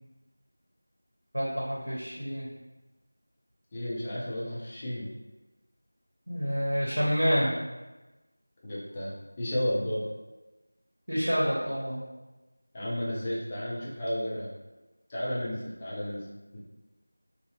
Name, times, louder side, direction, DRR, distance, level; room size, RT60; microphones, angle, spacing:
voice 1, 1.3-2.5 6.3-7.5 11.1-12.0, equal, 75° right, -5 dB, 0.8 m, -28 dB
voice 2, 3.7-5.1 8.6-10.1 12.7-14.5 15.1-16.3, equal, 15° left, -7 dB, 0.4 m, -32 dB
2.7 x 2.7 x 2.7 m, 1.1 s
figure-of-eight pair, 175°, 0 cm